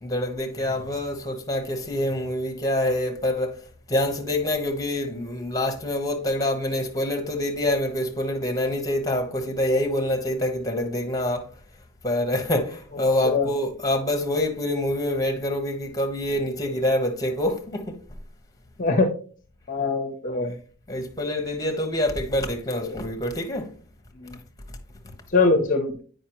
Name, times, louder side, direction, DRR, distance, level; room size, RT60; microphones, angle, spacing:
voice 1, 0.0-3.6 3.9-11.5 12.0-18.0 20.9-23.7, left 1 dB, 15° left, 1.0 m, -26 dB
voice 2, 19.7-20.5 22.8-23.0 24.2-24.4 25.3-26.0, left 3 dB, 35° left, 0.6 m, -22 dB
8.3 x 5.2 x 3.0 m
head